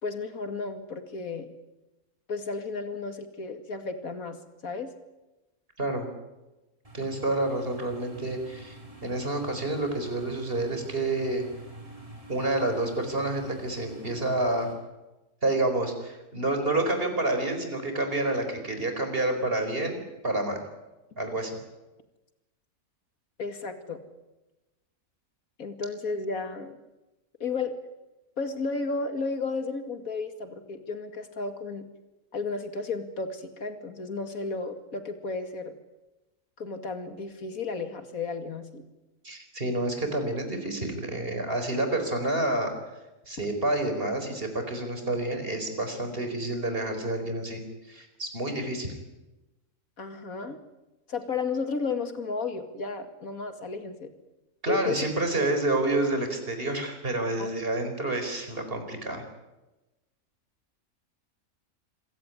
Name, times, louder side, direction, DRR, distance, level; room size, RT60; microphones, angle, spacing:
voice 1, 0.0-1.5 2.3-4.4 4.6-4.9 23.4-24.0 25.6-26.8 27.4-27.7 28.4-31.8 32.3-35.7 36.6-38.8 50.0-50.6 51.1-54.1 54.7-55.0 57.4-57.8, left 4 dB, 70° left, 8 dB, 2.7 m, -33 dB
sound 1, 6.8-14.7, right 2 dB, 25° right, 4.8 m, -47 dB
voice 2, 6.9-11.4 12.3-14.7 15.4-20.6 21.2-21.5 39.2-42.7 43.3-47.6 47.9-48.9 54.6-59.2, right 2 dB, 40° right, 6 dB, 4.8 m, -29 dB
26.5 x 16.5 x 9.8 m, 1.0 s
omnidirectional pair, 1.5 m